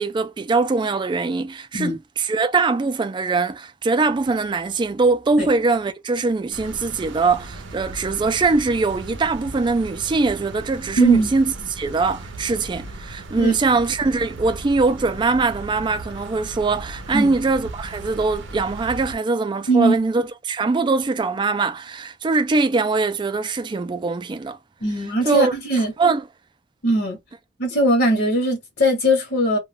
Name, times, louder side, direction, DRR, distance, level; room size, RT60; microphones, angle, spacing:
voice 1, 0.0-24.6 25.3-26.2, right 3 dB, 25° right, 0.3 m, -22 dB
sound 1, 6.5-19.1, right 2 dB, 85° right, 0.6 m, -37 dB
voice 2, 11.0-11.3 13.4-13.5 17.1-17.3 19.7-19.9 24.8-25.9 26.8-27.2 27.6-29.6, right 1 dB, 60° left, 0.9 m, -19 dB
2.3 x 2.2 x 3.1 m
head